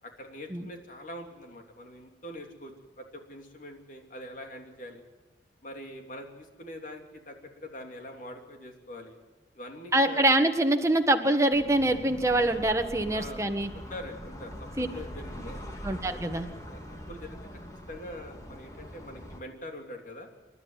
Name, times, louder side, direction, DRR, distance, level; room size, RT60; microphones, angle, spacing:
voice 1, 0.0-5.0 5.6-9.2 9.5-10.3 13.1-15.7 16.7-17.4 17.9-20.3, left 1 dB, 45° left, 3 dB, 3.1 m, -44 dB
voice 2, 9.9-13.7 14.8-14.9 15.8-16.5, right 1 dB, 15° right, 5 dB, 1.5 m, -24 dB
sound 1, 11.5-19.4, equal, 20° left, 3.3 m, -43 dB
29.0 x 12.5 x 9.7 m, 1.1 s
head